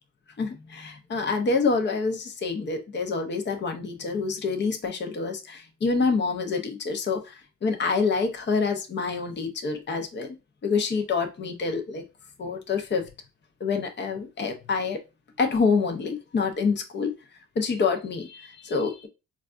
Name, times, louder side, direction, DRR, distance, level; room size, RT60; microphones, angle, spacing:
voice 1, 0.4-10.3 10.6-12.0 12.4-13.1 13.6-15.0 15.4-17.1 17.6-19.1, left 4 dB, 35° left, 0.7 m, -27 dB
4.0 x 2.4 x 2.5 m
cardioid pair, 90°, 30 cm